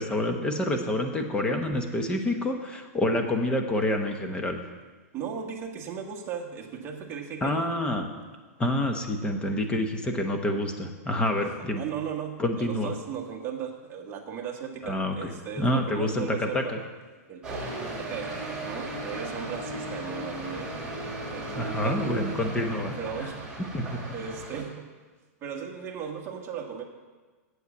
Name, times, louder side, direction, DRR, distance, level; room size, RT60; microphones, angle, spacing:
voice 1, 0.0-4.6 7.4-8.1 8.6-11.8 12.4-12.9 14.8-15.3 15.6-16.8 21.5-23.0 23.7-24.0, left 1 dB, 10° left, 4 dB, 1.0 m, -27 dB
voice 2, 5.1-7.7 11.6-16.8 17.3-17.7 18.0-20.7 21.3-22.1 22.4-22.5 23.0-23.5 24.1-24.9 25.4-26.8, right 7 dB, 25° right, 1 dB, 1.4 m, -36 dB
sound 1, 17.4-24.6, right 2 dB, 10° right, 3.1 m, -36 dB
8.2 x 8.0 x 7.2 m, 1.4 s
hypercardioid pair, 145°, 9 cm